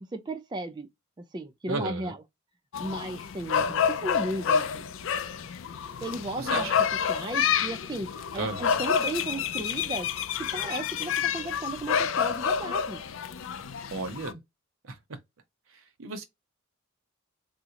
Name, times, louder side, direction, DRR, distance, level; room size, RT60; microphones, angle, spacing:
voice 1, 0.1-0.9 1.2-2.2 2.8-4.9 6.0-6.7 7.1-10.1 10.4-13.0, right 1 dB, 20° right, 0.4 m, -35 dB
voice 2, 1.7-2.1 6.4-6.7 8.4-8.8 13.9-14.4 14.8-15.2 15.7-16.2, right 3 dB, 80° right, 0.7 m, -34 dB
sound 1, 2.7-14.3, left 7 dB, 65° left, 0.4 m, -29 dB
3.6 x 2.1 x 2.8 m
head